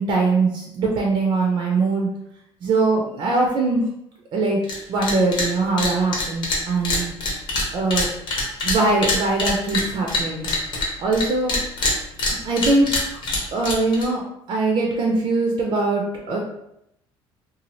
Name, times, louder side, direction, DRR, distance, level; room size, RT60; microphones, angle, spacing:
voice 1, 0.0-2.1 2.6-3.9 4.3-4.6 4.9-7.1 7.7-8.1 8.6-10.5 11.0-11.6 12.4-12.9 13.5-16.4, right 3 dB, 50° right, -1 dB, 0.5 m, -21 dB
sound 1, 4.6-4.8 5.0-5.5 5.8-11.2 11.5-14.1, left 2 dB, 50° left, 0.9 m, -24 dB
2.6 x 2.3 x 3.0 m, 0.79 s
cardioid pair, 160°, 10 cm